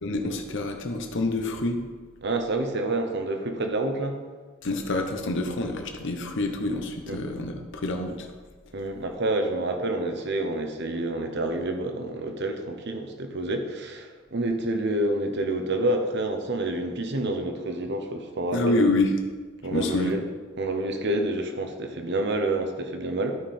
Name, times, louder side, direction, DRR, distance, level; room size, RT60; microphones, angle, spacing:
voice 1, 0.0-1.8 4.6-8.3 18.5-19.1 19.7-20.2, left 2 dB, 65° left, 4 dB, 0.9 m, -27 dB
voice 2, 2.2-4.2 7.1-7.2 8.7-18.8 19.6-20.2 20.6-23.4, right 2 dB, 60° right, 5 dB, 1.1 m, -28 dB
12.0 x 5.6 x 4.4 m, 1.4 s
head